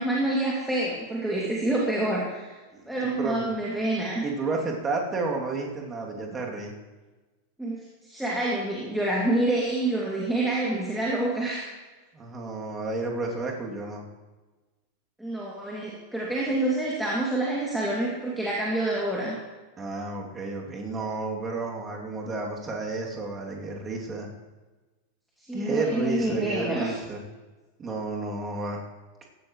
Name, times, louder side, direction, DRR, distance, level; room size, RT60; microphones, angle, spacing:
voice 1, 0.0-2.6 2.8-4.2 7.6-11.7 15.2-19.4 25.5-26.9, right 1 dB, 5° right, -5 dB, 2.6 m, -27 dB
voice 2, 2.7-3.4 4.2-6.7 12.1-14.0 19.8-24.3 25.5-27.2 27.8-28.8, right 3 dB, 20° right, -1 dB, 2.8 m, -31 dB
15.5 x 15.5 x 3.2 m, 1.2 s
figure-of-eight pair, 90°, 0 cm